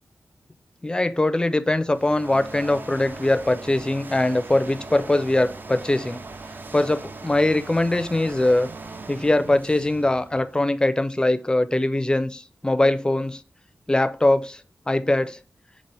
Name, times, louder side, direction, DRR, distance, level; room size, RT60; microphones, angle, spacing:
voice 1, 0.8-6.2 6.7-8.7 9.1-13.4 13.9-14.6 14.9-15.4, left 2 dB, 20° left, 11 dB, 0.4 m, -22 dB
sound 1, 1.6-10.8, right 3 dB, 45° right, 0.4 m, -40 dB
4.2 x 2.5 x 3.3 m, 0.35 s
cardioid pair, 50°, 5 cm